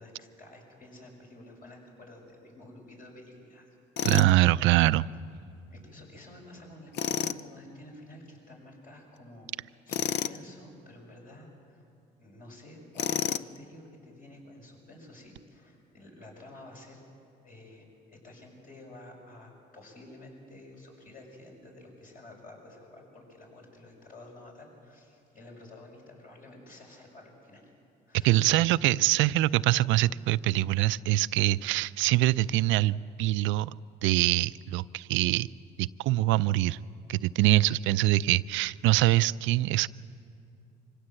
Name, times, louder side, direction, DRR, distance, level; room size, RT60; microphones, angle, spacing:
voice 1, 0.0-3.8 5.7-9.5 9.8-11.8 12.2-17.0 17.4-27.7 28.1-28.7, left 1 dB, 45° left, 0 dB, 6.7 m, -50 dB
Tools, 4.0-4.3 6.9-7.4 9.9-10.4 13.0-13.6, left 9 dB, 65° left, 0.6 m, -30 dB
voice 2, 4.0-5.1 28.2-33.7 34.0-35.5 35.8-36.8 37.1-39.9, right 16 dB, 85° right, 17 dB, 0.4 m, -24 dB
25.0 x 16.5 x 7.7 m, 2.6 s
cardioid pair, 95°, 19 cm